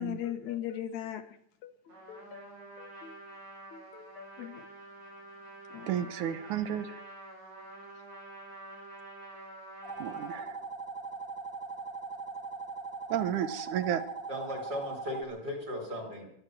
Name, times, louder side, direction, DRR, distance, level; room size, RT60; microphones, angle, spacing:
voice 1, 0.0-1.4 1.6-2.5 2.8-3.2 3.7-4.7 5.7-6.1, left 11 dB, 70° left, 9 dB, 2.3 m, -40 dB
Trumpet, 1.9-10.4, right 2 dB, 60° right, 8.4 m, -48 dB
voice 2, 5.9-7.0 10.0-10.6 13.1-14.0, right 10 dB, 80° right, 12 dB, 2.3 m, -32 dB
sound 1, 9.8-15.2, right 4 dB, 5° left, 1.8 m, -40 dB
voice 3, 14.3-16.3, left 1 dB, 30° right, 3 dB, 4.4 m, -37 dB
23.0 x 8.2 x 7.5 m, 0.72 s
omnidirectional pair, 3.5 m